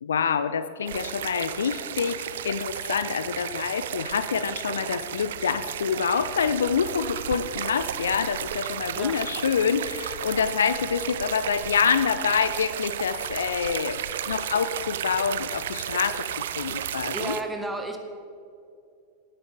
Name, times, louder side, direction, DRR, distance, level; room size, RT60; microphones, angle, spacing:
voice 1, 0.0-16.3 16.6-17.4, left 6 dB, 65° left, 13 dB, 0.5 m, -26 dB
sound 1, 0.9-17.4, right 10 dB, 60° right, 0.5 m, -33 dB
voice 2, 17.1-18.0, right 2 dB, 5° right, 3 dB, 1.4 m, -32 dB
18.5 x 10.0 x 3.5 m, 2.5 s
figure-of-eight pair, 90°, 0 cm